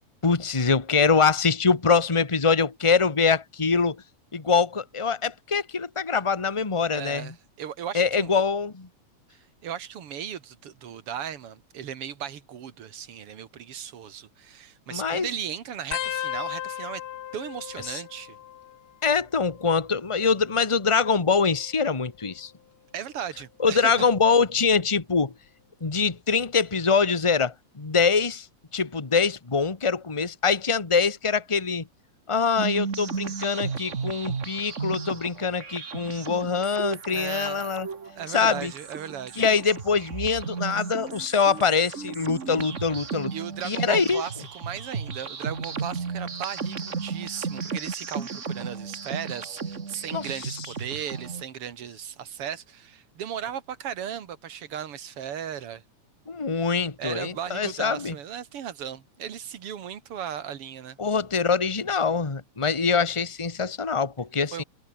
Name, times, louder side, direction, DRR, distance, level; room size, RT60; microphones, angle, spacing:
voice 1, 0.2-4.0 4.3-7.3 7.9-8.9 14.9-15.3 17.9-18.0 19.0-22.5 23.6-25.3 25.8-28.5 28.7-31.9 32.3-37.9 38.3-38.7 39.4-43.3 43.6-44.2 50.1-50.6 56.3-58.1 61.0-64.6, left 5 dB, 30° left, 0.5 m, -24 dB
voice 2, 6.9-8.3 9.3-17.0 17.3-18.4 22.9-23.9 37.1-37.8 38.2-39.4 43.3-55.8 57.0-61.0 64.5-64.6, right 9 dB, 55° right, 2.5 m, -36 dB
sound 1, 15.9-19.1 19.4-20.0 21.0-22.4 23.1-23.4 24.6-25.0 26.5-26.6, left 11 dB, 60° left, 1.5 m, -37 dB
sound 2, 32.6-51.4, right 5 dB, 30° right, 1.5 m, -34 dB
omnidirectional pair, 3.3 m